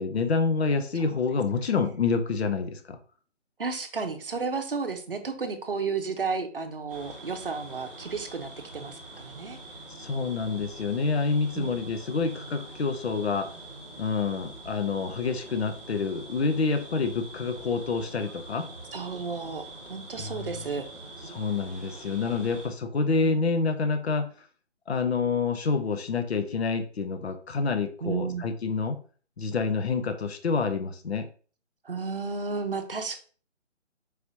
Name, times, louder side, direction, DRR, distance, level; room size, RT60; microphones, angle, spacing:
voice 1, 0.0-3.0 10.0-13.5 14.0-18.7 20.2-20.5 21.3-24.3 24.9-29.0 29.4-31.3, left 4 dB, 55° left, 8 dB, 0.7 m, -27 dB
voice 2, 3.6-9.6 11.5-11.8 18.9-20.9 21.2-21.4 23.1-23.4 28.0-28.5 31.8-33.2, right 4 dB, 50° right, 6 dB, 0.7 m, -33 dB
sound 1, 6.9-22.7, right 2 dB, 10° right, 1.0 m, -44 dB
4.7 x 3.1 x 2.7 m, 0.40 s
hypercardioid pair, 170°, 37 cm